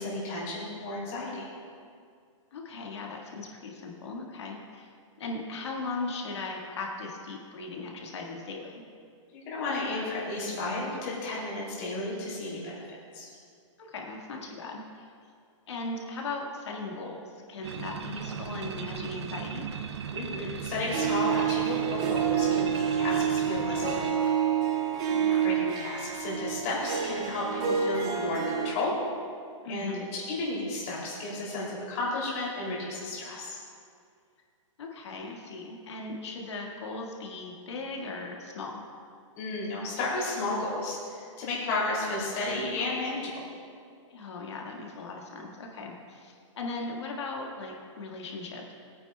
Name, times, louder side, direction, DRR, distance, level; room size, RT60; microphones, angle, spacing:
voice 1, 0.0-1.5 9.3-13.3 20.1-24.2 25.4-28.9 29.7-33.6 39.4-43.4, left 2 dB, 25° left, -5 dB, 2.8 m, -33 dB
voice 2, 2.5-4.9 5.2-8.8 13.8-15.1 15.7-19.6 25.1-25.6 29.6-30.1 34.8-38.8 44.1-48.7, left 3 dB, 60° left, 0 dB, 1.7 m, -38 dB
sound 1, 17.6-24.1, right 7 dB, 55° right, 0.6 m, -38 dB
Harp, 20.9-28.7, right 8 dB, 15° right, 0.3 m, -28 dB
20.0 x 9.3 x 2.3 m, 2.3 s
hypercardioid pair, 175°, 17 cm